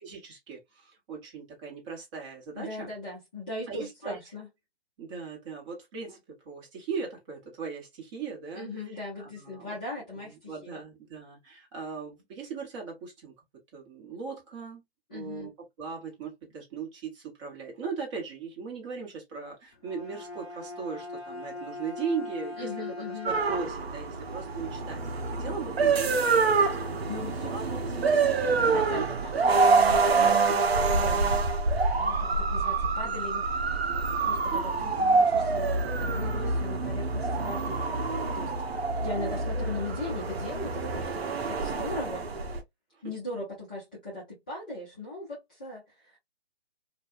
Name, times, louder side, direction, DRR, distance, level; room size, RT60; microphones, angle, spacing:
voice 1, 0.0-2.9 3.7-4.2 5.0-8.7 9.2-9.8 10.2-13.3 13.7-14.8 15.1-15.5 15.8-22.9 23.2-26.5 26.9-27.0 27.4-28.0 28.6-29.1 29.4-29.6 29.9-30.4 30.8-31.2 31.6-31.8 34.5-34.9 39.2-39.5 42.9-43.0, right 5 dB, 30° right, 1.3 m, -38 dB
voice 2, 2.5-4.5 8.5-10.8 15.1-15.5 22.6-23.3 27.1-27.5 28.6-31.2 32.0-33.5 34.2-37.8 38.3-38.5 38.9-42.3 43.0-46.2, left 2 dB, 10° left, 0.3 m, -39 dB
Bowed string instrument, 19.7-24.0, left 3 dB, 35° left, 0.8 m, -40 dB
sound 1, 23.3-42.6, right 4 dB, 75° right, 0.7 m, -26 dB
2.6 x 2.3 x 2.5 m
figure-of-eight pair, 140°, 31 cm